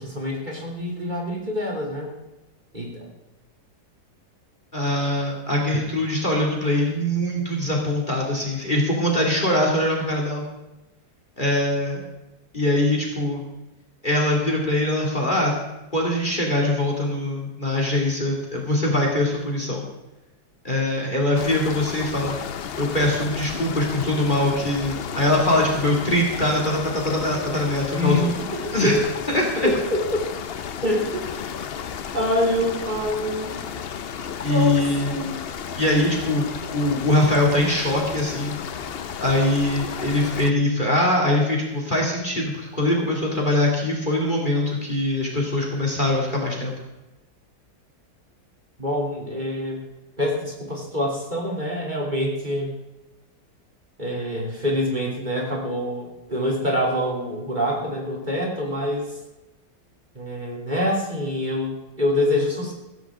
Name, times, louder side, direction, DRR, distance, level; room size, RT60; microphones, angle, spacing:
voice 1, 0.0-2.1 2.7-3.1 27.9-28.2 28.5-29.0 29.6-30.2 30.8-31.3 32.1-33.6 34.4-35.3 48.8-49.8 50.2-52.7 54.0-59.1 60.1-62.7, left 1 dB, 25° right, -2 dB, 3.2 m, -26 dB
voice 2, 4.7-10.4 11.4-12.0 12.5-13.4 14.0-15.5 15.9-19.8 20.6-22.4 22.7-28.3 28.7-29.7 34.4-35.2 35.8-36.5 36.7-38.6 39.2-46.7, left 1 dB, 25° left, -1 dB, 2.7 m, -22 dB
sound 1, 21.3-40.5, left 7 dB, 80° left, 0.5 m, -33 dB
15.5 x 15.5 x 3.7 m, 1.0 s
omnidirectional pair, 1.9 m